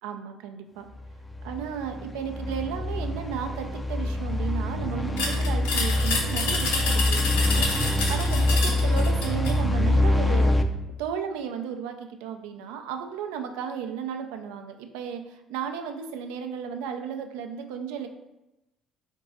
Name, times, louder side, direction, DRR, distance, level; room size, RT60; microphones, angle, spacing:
voice 1, 0.0-0.9 1.4-10.6 11.0-18.1, right 7 dB, 70° right, 6 dB, 0.4 m, -34 dB
sound 1, 1.0-10.6, left 1 dB, 15° left, 0.4 m, -25 dB
sound 2, 5.2-9.6, left 3 dB, 70° left, 0.7 m, -28 dB
3.8 x 2.2 x 4.0 m, 0.93 s
figure-of-eight pair, 50°, 0 cm